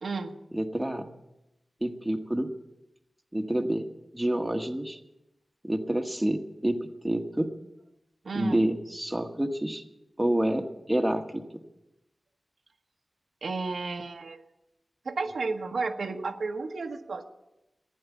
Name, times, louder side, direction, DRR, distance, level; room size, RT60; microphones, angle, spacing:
voice 1, 0.0-0.4 8.2-8.6 13.4-14.4 15.0-17.2, right 4 dB, 80° right, 4 dB, 1.2 m, -32 dB
voice 2, 0.5-1.1 1.8-2.5 3.3-3.9 4.1-5.0 5.6-7.5 8.3-9.8 10.2-11.4, right 1 dB, 10° right, 4 dB, 1.2 m, -28 dB
15.0 x 10.5 x 8.3 m, 0.94 s
wide cardioid pair, 105°, 0 cm